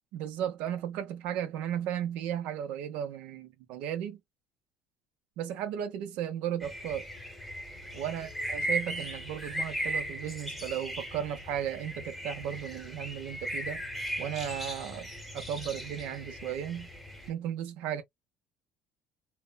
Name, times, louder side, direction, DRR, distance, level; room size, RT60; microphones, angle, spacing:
voice 1, 0.1-4.2 5.4-7.1 7.9-13.8 14.2-15.1 15.3-16.9 17.3-18.0, right 10 dB, 75° right, 0.6 m, -35 dB
sound 1, 6.6-17.3, equal, ahead, 0.9 m, -37 dB
3.0 x 2.1 x 2.2 m
cardioid pair, 130°, 2 cm